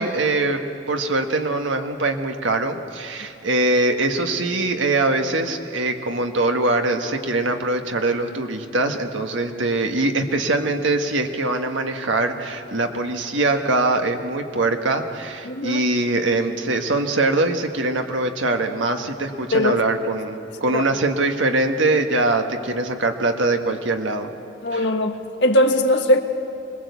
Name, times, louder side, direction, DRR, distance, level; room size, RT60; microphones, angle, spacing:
voice 1, 0.0-24.3 24.7-24.9, right 2 dB, 75° right, 5 dB, 1.6 m, -22 dB
voice 2, 15.4-15.8 19.5-19.8 20.7-20.8 24.6-26.2, left 1 dB, 60° left, 5 dB, 1.5 m, -19 dB
25.0 x 20.0 x 8.3 m, 2.7 s
head